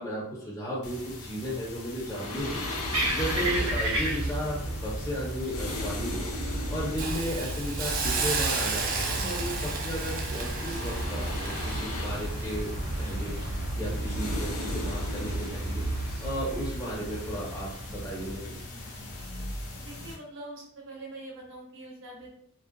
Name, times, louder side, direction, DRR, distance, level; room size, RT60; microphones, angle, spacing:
voice 1, 0.0-2.7 3.2-6.3 6.7-15.9 16.2-18.6, equal, 15° left, -6 dB, 0.5 m, -35 dB
sound 1, 0.8-20.1, left 2 dB, 70° left, 0.6 m, -39 dB
sound 2, 2.4-18.4, right 1 dB, 85° right, 0.6 m, -33 dB
Hiss, 7.0-14.0 14.4-14.6, right 4 dB, 40° right, 0.4 m, -33 dB
voice 2, 18.7-19.1 19.8-22.3, right 2 dB, 60° right, -2 dB, 0.8 m, -44 dB
2.5 x 2.1 x 2.5 m, 0.68 s
head